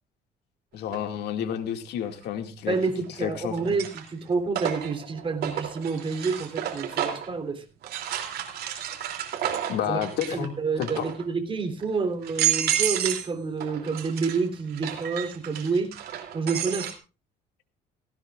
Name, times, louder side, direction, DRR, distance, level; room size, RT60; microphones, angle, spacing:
voice 1, 0.7-2.8 3.2-3.6 9.7-10.5 10.8-11.0, left 9 dB, 75° left, 2.1 m, -30 dB
sound 1, 0.9-1.0 2.7-3.2 3.6-7.3 7.8-10.5 10.7-11.2 11.8-11.9 12.2-13.3 13.6-16.9, right 10 dB, 70° right, 2.9 m, -31 dB
voice 2, 2.6-7.6 9.9-10.0 10.3-15.9 16.3-16.9, right 4 dB, 30° right, 3.3 m, -28 dB
17.0 x 16.5 x 2.4 m
cardioid pair, 110°, 17 cm